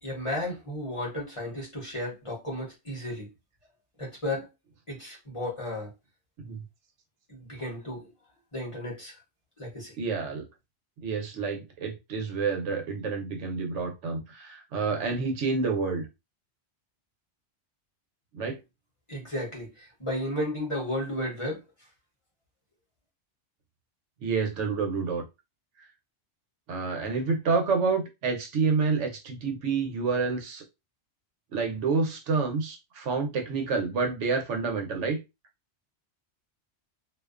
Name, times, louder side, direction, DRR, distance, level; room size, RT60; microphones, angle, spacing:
voice 1, 0.0-3.3 4.0-4.5 4.9-5.9 7.3-8.1 8.5-9.2 9.6-10.0 19.1-21.6, left 1 dB, 30° left, 0.8 m, -33 dB
voice 2, 10.0-10.4 11.0-16.1 18.3-18.6 24.2-25.2 26.7-30.6 31.5-35.2, right 4 dB, 85° right, 1.0 m, -28 dB
2.4 x 2.2 x 2.3 m
omnidirectional pair, 1.2 m